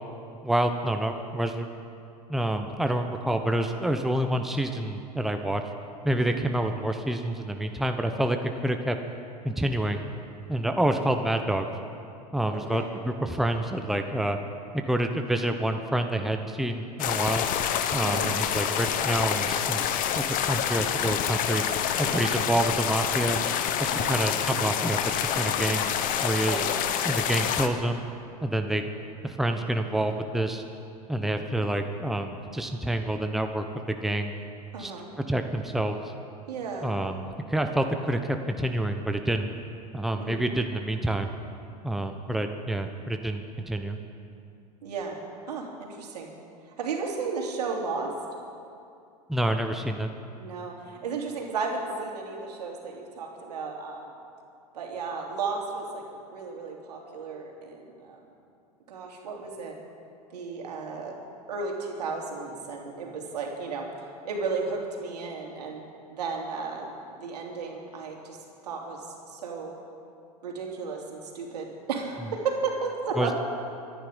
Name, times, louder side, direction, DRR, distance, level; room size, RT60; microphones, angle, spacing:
voice 1, 0.4-1.7 2.3-5.6 6.0-8.4 8.6-9.0 9.4-10.0 10.5-11.7 12.3-14.4 14.7-17.5 17.9-21.6 22.0-23.4 23.8-25.9 26.2-26.6 27.0-28.0 28.4-28.9 29.2-30.6 31.1-34.3 34.8-34.9 35.3-36.1 36.8-39.5 39.9-41.3 41.8-44.0 49.3-50.1 73.2-73.4, right 1 dB, ahead, 5 dB, 1.0 m, -28 dB
voice 2, 12.5-12.9 18.0-18.3 22.0-22.3 24.0-24.3 26.4-26.6 34.7-35.1 36.5-36.9 40.2-40.5 44.8-45.2 45.5-46.3 46.7-48.1 50.4-54.1 54.7-58.2 58.9-59.7 60.3-61.1 61.5-63.8 64.2-65.8 66.1-68.4 68.6-69.7 70.4-73.4, right 4 dB, 75° right, 0 dB, 3.2 m, -34 dB
sound 1, 17.0-27.7, left 9 dB, 40° left, 1.2 m, -27 dB
25.0 x 10.0 x 5.3 m, 2.5 s
hypercardioid pair, 90°, 20 cm